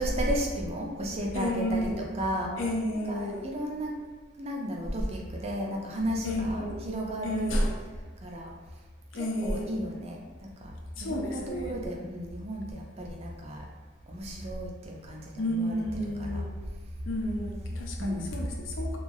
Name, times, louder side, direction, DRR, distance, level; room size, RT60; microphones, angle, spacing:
voice 1, 0.0-2.5 3.1-4.0 4.4-7.5 8.2-8.5 9.2-10.7 11.0-13.7 14.1-15.7 16.2-16.5 18.0-18.4, equal, 30° right, -1 dB, 0.4 m, -33 dB
voice 2, 1.3-2.1 2.6-3.5 6.2-6.9 7.2-7.8 9.1-9.8 11.0-11.8 15.4-16.6 17.1-19.0, equal, 80° left, 1 dB, 0.5 m, -31 dB
2.9 x 2.3 x 2.6 m, 1.4 s
head